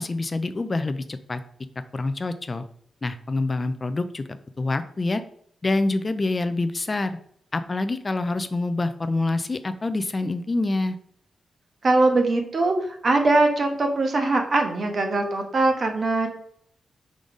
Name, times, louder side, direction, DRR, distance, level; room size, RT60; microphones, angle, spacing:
voice 1, 0.0-1.4 1.9-2.6 3.0-4.2 4.6-5.2 5.6-7.2 7.5-11.0, left 2 dB, 30° left, 11 dB, 0.4 m, -26 dB
voice 2, 11.8-16.3, right 2 dB, 45° right, 4 dB, 1.1 m, -21 dB
5.2 x 3.9 x 4.9 m, 0.64 s
wide cardioid pair, 120°, 0 cm